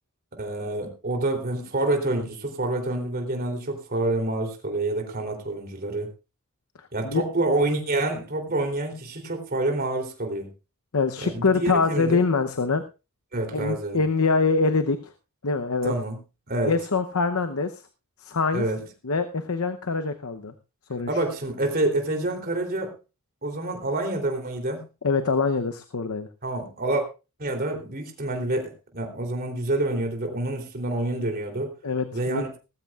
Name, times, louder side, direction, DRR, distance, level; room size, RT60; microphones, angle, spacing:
voice 1, 0.3-6.1 6.9-10.5 11.2-12.2 13.3-14.0 15.8-16.2 16.5-16.7 18.5-18.8 21.1-22.9 23.4-24.8 26.4-27.0 27.4-31.7 32.1-32.5, right 2 dB, 45° right, 3 dB, 3.2 m, -27 dB
voice 2, 10.9-12.8 13.5-15.1 15.4-15.9 16.6-17.8 18.2-18.6 19.0-20.5 20.9-21.1 25.0-26.3 31.8-32.4, left 4 dB, 80° left, 8 dB, 0.8 m, -24 dB
18.5 x 15.0 x 2.4 m, 0.30 s
head